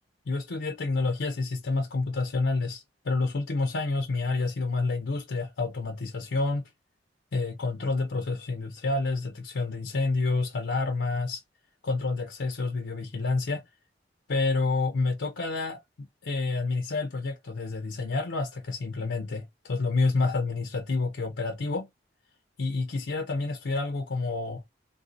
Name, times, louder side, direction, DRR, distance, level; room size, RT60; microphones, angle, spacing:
voice 1, 0.3-6.7 7.3-11.4 11.8-13.6 14.3-21.9 22.6-24.7, left 3 dB, 80° left, 0.6 m, -29 dB
3.4 x 2.6 x 2.5 m
head